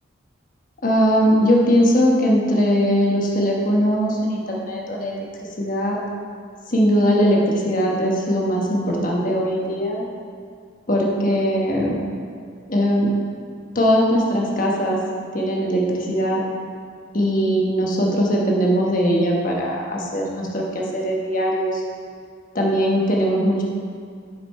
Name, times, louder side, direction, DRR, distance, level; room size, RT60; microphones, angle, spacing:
voice 1, 0.8-5.2 5.6-6.0 6.7-10.0 10.9-11.9 12.7-13.1 13.7-15.0 15.3-16.4 17.1-21.8 22.5-23.6, equal, 40° left, -2 dB, 1.2 m, -20 dB
8.9 x 5.3 x 4.4 m, 2.2 s
head